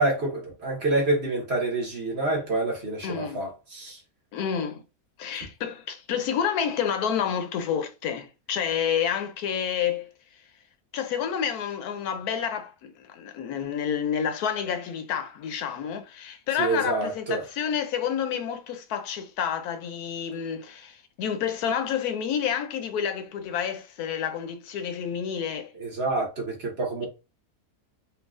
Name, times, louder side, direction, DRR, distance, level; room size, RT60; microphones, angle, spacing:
voice 1, 0.0-4.0 16.6-17.4 25.8-27.1, right 2 dB, 45° right, 1.4 m, -27 dB
voice 2, 3.0-3.4 4.3-4.8 5.2-10.1 10.9-25.7, left 8 dB, 80° left, 1.1 m, -29 dB
4.6 x 2.4 x 2.4 m
omnidirectional pair, 1.6 m